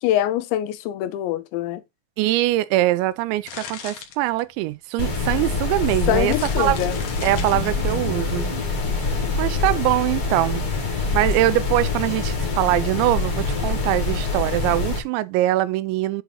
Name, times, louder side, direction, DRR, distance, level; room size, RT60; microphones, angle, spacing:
voice 1, 0.0-1.8 6.1-6.9, left 12 dB, 85° left, 3.1 m, -24 dB
voice 2, 2.2-6.8 7.2-8.5 9.0-16.2, right 16 dB, 85° right, 2.8 m, -23 dB
sound 1, 3.1-4.8 5.6-5.7 6.0-8.1, left 8 dB, 65° left, 2.5 m, -39 dB
sound 2, 5.0-15.0, left 4 dB, 50° left, 1.8 m, -25 dB
sound 3, 6.5-10.0, right 7 dB, 55° right, 1.3 m, -39 dB
8.1 x 3.0 x 5.4 m
omnidirectional pair, 5.1 m